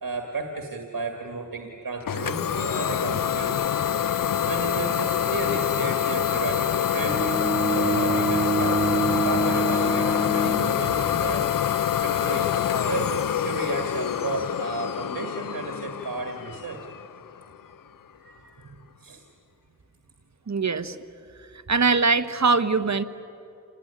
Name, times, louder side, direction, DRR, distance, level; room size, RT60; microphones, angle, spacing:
voice 1, 0.0-3.7 4.5-11.5 12.0-12.6 12.8-16.9 18.2-18.5 19.0-19.2, right 3 dB, 85° right, 3 dB, 1.9 m, -33 dB
Idling / Domestic sounds home sounds, 2.1-17.6, left 9 dB, 75° left, 0.6 m, -26 dB
Bowed string instrument, 7.1-11.3, right 2 dB, 5° right, 2.5 m, -27 dB
voice 2, 20.5-21.0 21.7-23.0, right 4 dB, 55° right, 11 dB, 1.1 m, -22 dB
27.5 x 19.0 x 9.9 m, 2.7 s
wide cardioid pair, 70°, 34 cm